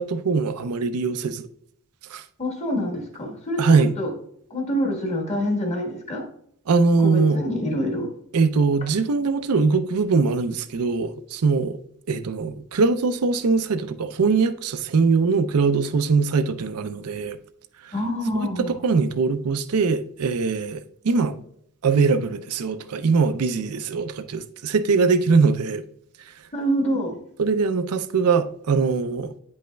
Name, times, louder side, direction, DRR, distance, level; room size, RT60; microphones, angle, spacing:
voice 1, 0.0-1.4 2.1-2.2 3.6-3.9 6.7-7.4 8.3-11.8 12.1-17.4 17.8-17.9 18.7-21.4 21.8-25.8 27.4-29.3, right 4 dB, 85° right, 0.5 m, -22 dB
voice 2, 2.4-3.6 4.0-4.1 4.5-6.2 7.0-8.1 17.9-18.8 26.5-27.2, equal, 30° left, 1.3 m, -26 dB
8.7 x 5.3 x 2.2 m
head